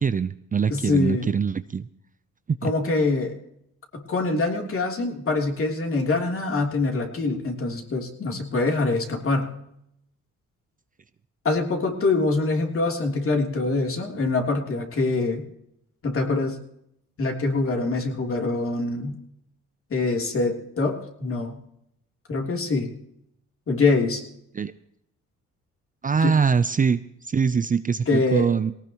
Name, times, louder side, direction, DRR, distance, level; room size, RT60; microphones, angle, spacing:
voice 1, 0.0-1.8 2.5-2.7 24.5-24.7 26.0-28.7, right 6 dB, 25° right, 13 dB, 0.6 m, -23 dB
voice 2, 0.7-1.3 2.6-3.3 3.9-9.5 11.4-15.4 16.0-16.5 17.2-19.1 19.9-21.6 22.3-22.9 23.7-24.2 26.2-26.3 28.1-28.5, left 3 dB, 45° left, 2 dB, 3.3 m, -24 dB
19.5 x 18.5 x 3.0 m, 0.77 s
cardioid pair, 90°, 30 cm